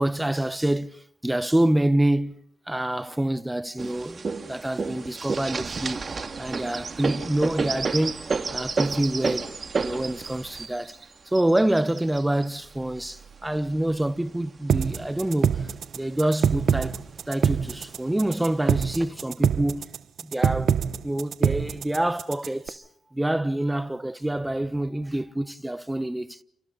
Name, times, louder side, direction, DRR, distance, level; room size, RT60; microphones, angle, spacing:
voice 1, 0.0-2.4 2.7-6.0 6.4-8.2 8.5-9.5 9.8-11.0 11.3-19.9 20.2-20.8 21.0-22.8 23.1-26.4, right 1 dB, 10° right, 1.0 m, -26 dB
sound 1, 3.8-14.1 14.7-15.6 16.1-16.2 16.4-17.1 17.9-18.0 18.6-19.0, right 4 dB, 40° right, 2.4 m, -31 dB
sound 2, 14.7-22.7, right 8 dB, 70° right, 0.9 m, -24 dB
29.5 x 28.5 x 4.1 m
cardioid pair, 85°, 0 cm